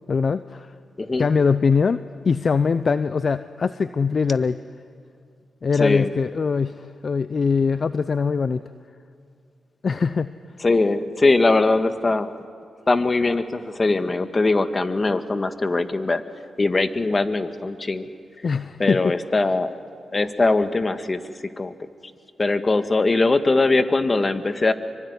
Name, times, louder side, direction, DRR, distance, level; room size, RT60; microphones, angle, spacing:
voice 1, 0.1-0.7 1.2-4.6 5.6-8.6 9.8-10.3 18.4-19.1, left 5 dB, 55° left, 13 dB, 0.7 m, -22 dB
voice 2, 10.6-12.3 12.9-16.2 16.6-18.1 18.8-19.8 20.1-21.2 21.6-21.7 22.4-24.7, left 3 dB, 35° left, 9 dB, 1.9 m, -21 dB
25.5 x 24.0 x 9.8 m, 2.3 s
supercardioid pair, 45°, 0 cm